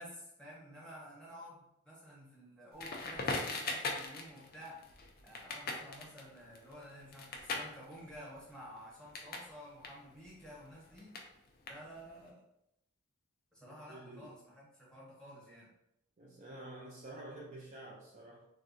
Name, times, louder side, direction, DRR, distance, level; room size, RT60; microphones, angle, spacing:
voice 1, 0.0-4.9 5.2-11.2 11.7-12.4 13.5-15.7, equal, 5° left, -6 dB, 0.9 m, -52 dB
Crackle, 2.8-9.5 9.8-12.2, left 3 dB, 40° left, 0.4 m, -41 dB
voice 2, 13.7-14.3 16.2-18.5, right 1 dB, 30° right, -3 dB, 0.3 m, -49 dB
3.6 x 2.1 x 2.5 m, 0.80 s
head